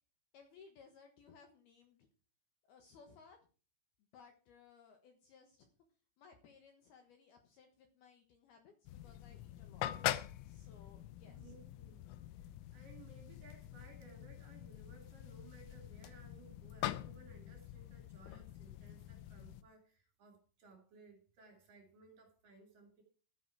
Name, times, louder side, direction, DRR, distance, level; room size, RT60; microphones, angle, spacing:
voice 1, 0.3-2.1 2.6-3.4 4.1-5.7 6.2-9.8 10.4-11.6, left 5 dB, 65° left, 5 dB, 2.7 m, -61 dB
sound 1, 8.9-19.6, left 14 dB, 85° left, 3.4 m, -44 dB
voice 2, 11.2-12.0 12.4-23.0, right 4 dB, 50° right, 3 dB, 3.7 m, -61 dB
13.5 x 10.0 x 4.7 m, 0.37 s
omnidirectional pair, 5.9 m